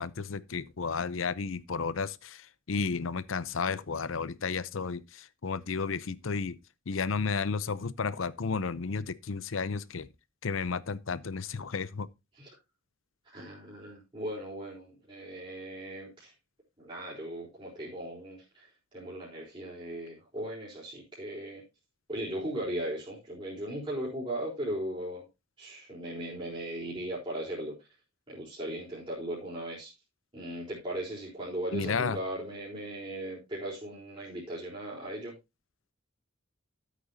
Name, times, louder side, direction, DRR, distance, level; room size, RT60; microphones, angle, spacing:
voice 1, 0.0-2.4 2.7-6.6 6.9-10.1 10.4-12.1 31.7-32.2, left 5 dB, 80° left, 0.7 m, -32 dB
voice 2, 13.3-16.3 16.8-18.7 18.9-21.6 22.1-25.2 25.6-27.7 28.3-29.9 30.3-35.3, right 1 dB, 25° right, 4.2 m, -38 dB
13.0 x 8.3 x 2.7 m
head